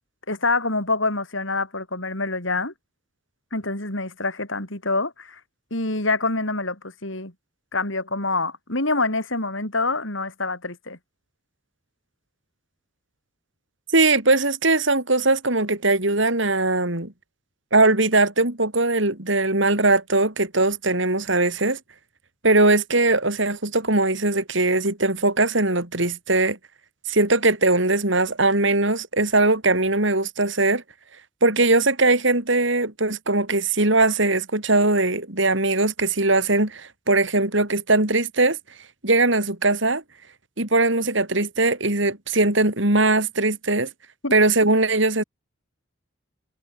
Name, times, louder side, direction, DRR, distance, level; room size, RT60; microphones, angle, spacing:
voice 1, 0.3-2.7 3.5-5.4 5.7-7.3 7.7-11.0 44.2-44.3, left 3 dB, 70° left, 7.0 m, -26 dB
voice 2, 13.9-17.1 17.7-21.8 22.4-26.6 27.1-30.8 31.4-38.6 39.0-40.0 40.6-43.9 44.3-45.2, right 2 dB, 65° right, 4.2 m, -20 dB
head